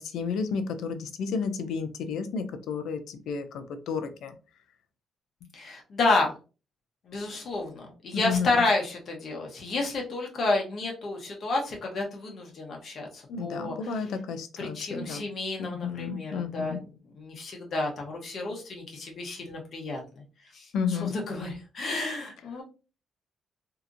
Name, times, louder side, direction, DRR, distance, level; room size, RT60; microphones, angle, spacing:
voice 1, 0.0-4.4 8.1-8.6 13.3-15.2 15.6-16.8 20.7-21.1, left 5 dB, 80° left, 8 dB, 0.5 m, -32 dB
voice 2, 5.5-6.3 7.0-13.8 14.6-16.8 17.2-20.2 20.5-20.7 21.0-22.6, left 2 dB, 55° left, 0 dB, 1.0 m, -30 dB
2.8 x 2.5 x 2.5 m, 0.33 s
cardioid pair, 90°, 0 cm